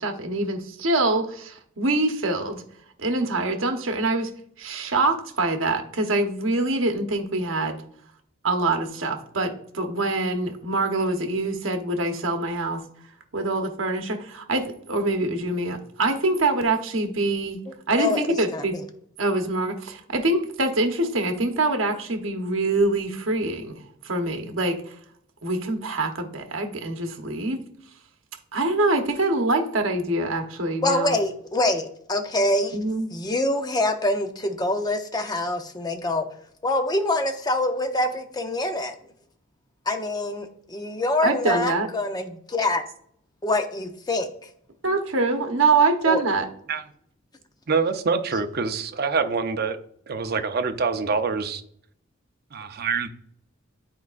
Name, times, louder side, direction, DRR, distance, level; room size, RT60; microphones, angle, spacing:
voice 1, 0.0-2.6 3.0-4.3 4.6-7.8 8.4-12.8 13.3-18.8 19.2-25.0 25.4-27.6 28.5-31.2 32.7-33.1 41.2-41.9 44.8-46.5, right 2 dB, 70° right, 5 dB, 1.1 m, -25 dB
voice 2, 17.9-18.2 18.5-18.6 30.8-32.7 33.1-36.3 36.6-38.9 39.9-42.8 43.4-44.3 46.1-46.2, left 2 dB, 20° left, 6 dB, 0.6 m, -25 dB
voice 3, 47.7-49.8 50.1-51.6 52.5-53.1, right 4 dB, 50° right, 8 dB, 0.6 m, -25 dB
10.5 x 4.7 x 2.5 m, 0.65 s
head